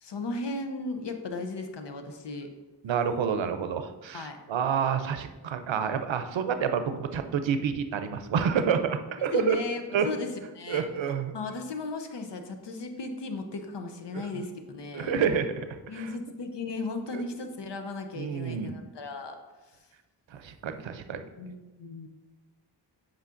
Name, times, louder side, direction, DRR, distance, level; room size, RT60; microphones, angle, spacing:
voice 1, 0.0-2.5 4.1-4.4 9.2-10.8 11.3-15.2 15.9-19.4 21.4-22.1, left 3 dB, 70° left, 6 dB, 0.8 m, -36 dB
voice 2, 2.8-9.6 9.9-10.1 10.7-11.3 14.9-15.7 15.9-16.1 17.1-17.2 18.2-18.7 20.3-21.2, right 7 dB, 85° right, 9 dB, 0.6 m, -28 dB
8.2 x 5.1 x 2.5 m, 1.2 s
wide cardioid pair, 70°, 44 cm